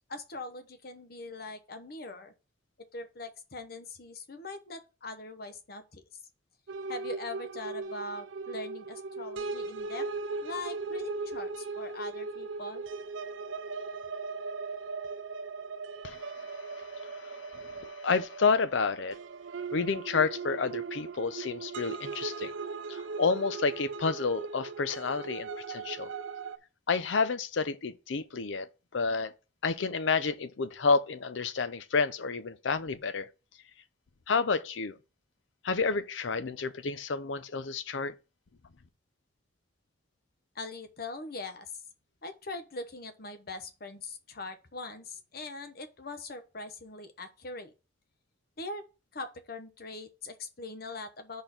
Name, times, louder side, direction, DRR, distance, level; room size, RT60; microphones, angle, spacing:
voice 1, 0.1-2.3 2.9-6.0 6.9-10.1 10.4-12.8 40.5-41.7 42.2-47.7 48.6-48.8 49.1-51.4, left 2 dB, 50° left, 0.9 m, -41 dB
sound 1, 6.7-26.6, right 4 dB, 80° right, 0.5 m, -38 dB
voice 2, 16.0-19.2 19.7-22.5 22.9-26.1 26.9-28.7 28.9-29.3 29.6-33.3 34.3-35.0 35.6-38.1, left 4 dB, 75° left, 0.6 m, -30 dB
5.2 x 4.3 x 5.9 m
head